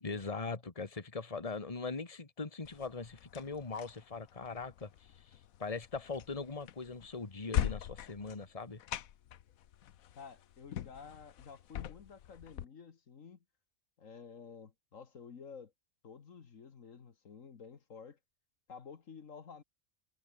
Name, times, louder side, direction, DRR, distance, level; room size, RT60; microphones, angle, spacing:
voice 1, 0.0-5.3 5.6-8.8, left 4 dB, 25° left, 1.8 m, -41 dB
sound 1, 2.7-12.7, left 11 dB, 85° left, 1.3 m, -42 dB
voice 2, 10.2-13.4 14.0-15.7 16.0-18.2 18.7-19.6, left 6 dB, 70° left, 1.9 m, -51 dB
omnidirectional pair, 1.4 m